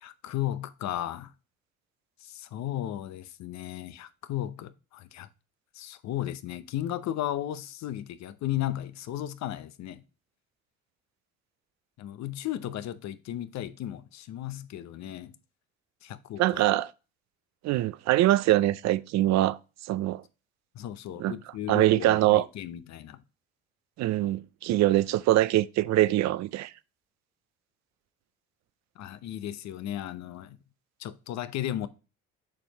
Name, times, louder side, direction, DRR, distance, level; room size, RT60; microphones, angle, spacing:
voice 1, 0.0-1.3 2.2-5.3 5.7-10.0 12.0-15.3 16.0-16.6 20.7-23.2 29.0-30.6 31.0-31.9, left 12 dB, 65° left, 0.7 m, -35 dB
voice 2, 16.4-16.9 17.6-19.6 19.9-20.2 21.2-21.3 21.7-22.4 24.0-26.7, right 15 dB, 65° right, 0.5 m, -23 dB
7.4 x 4.5 x 2.9 m
cardioid pair, 90°, 30 cm